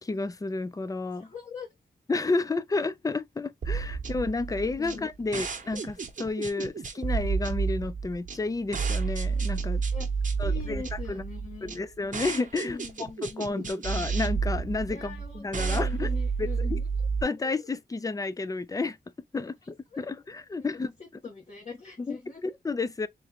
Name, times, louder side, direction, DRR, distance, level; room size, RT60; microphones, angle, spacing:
voice 1, 0.0-1.3 2.1-9.8 10.4-10.8 11.1-11.2 11.6-16.1 16.4-16.8 17.2-19.0 19.3-20.9 22.1-22.2 22.6-23.1, left 3 dB, 20° left, 0.4 m, -31 dB
voice 2, 1.2-1.7 4.8-5.0 9.9-10.1 10.4-11.8 12.6-13.8 14.9-16.9 19.9-20.1 20.6-20.9 21.2-22.6, left 4 dB, 35° left, 1.4 m, -42 dB
sound 1, 3.6-17.2, right 5 dB, 45° right, 1.0 m, -30 dB
3.6 x 3.3 x 3.5 m
wide cardioid pair, 110°, 19 cm